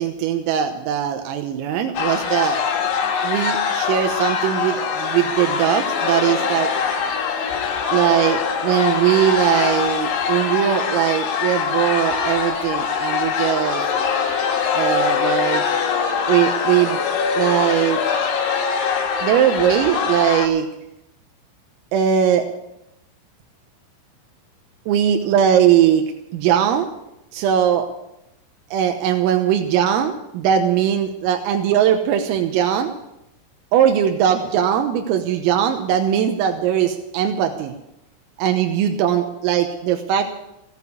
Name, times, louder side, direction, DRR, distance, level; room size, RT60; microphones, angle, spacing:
voice 1, 0.0-2.6 3.2-6.7 7.9-13.9 14.7-15.6 16.3-17.0 17.4-18.0 19.2-20.7 21.9-22.5 24.9-26.0 26.3-26.9 27.3-27.9 28.7-32.9 33.7-37.8 38.4-40.2, right 10 dB, 90° right, 5 dB, 3.7 m, -20 dB
sound 1, 2.0-20.5, left 6 dB, 65° left, 3.5 m, -23 dB
16.0 x 9.1 x 8.3 m, 0.85 s
omnidirectional pair, 5.9 m